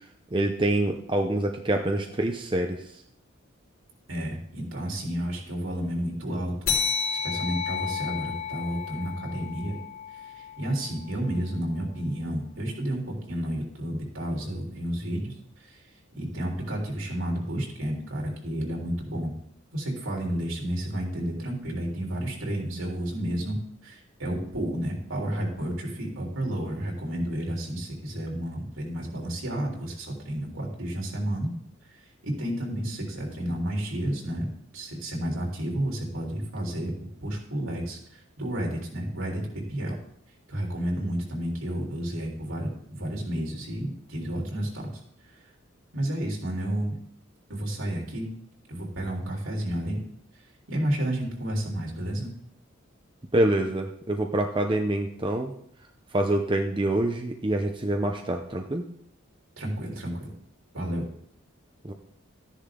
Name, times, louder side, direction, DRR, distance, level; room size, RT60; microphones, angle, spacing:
voice 1, 0.3-2.9 53.3-55.5 56.1-58.8 61.8-61.9, right 1 dB, 25° right, 4 dB, 0.6 m, -26 dB
voice 2, 4.1-6.7 7.2-9.8 10.1-15.9 16.2-19.3 19.7-23.6 23.8-31.5 31.9-36.9 37.2-39.9 40.5-44.9 45.2-45.4 45.9-47.0 47.5-48.3 48.7-50.0 50.7-52.3 59.6-60.3 60.7-61.0, right 1 dB, 75° right, -1 dB, 3.6 m, -31 dB
sound 1, 6.7-11.6, left 6 dB, 70° left, 3.0 m, -32 dB
13.5 x 10.0 x 3.8 m, 0.69 s
head